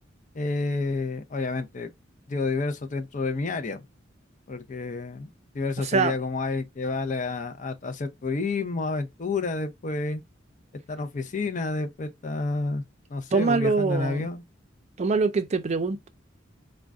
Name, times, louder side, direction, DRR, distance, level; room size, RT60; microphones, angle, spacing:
voice 1, 0.3-1.9 2.3-3.9 4.5-5.3 5.5-10.2 10.9-12.8 13.1-14.4, left 3 dB, 40° left, 0.5 m, -29 dB
voice 2, 5.8-6.1 13.3-14.3 15.0-16.1, right 4 dB, 35° right, 0.4 m, -24 dB
3.7 x 2.1 x 2.3 m
head